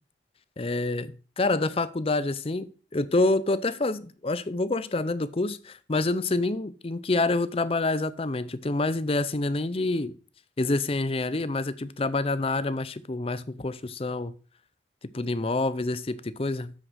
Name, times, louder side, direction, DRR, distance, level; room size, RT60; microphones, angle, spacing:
voice 1, 0.6-10.1 10.6-14.3 15.1-16.7, left 2 dB, 30° left, 0.5 m, -27 dB
7.6 x 6.3 x 6.2 m
head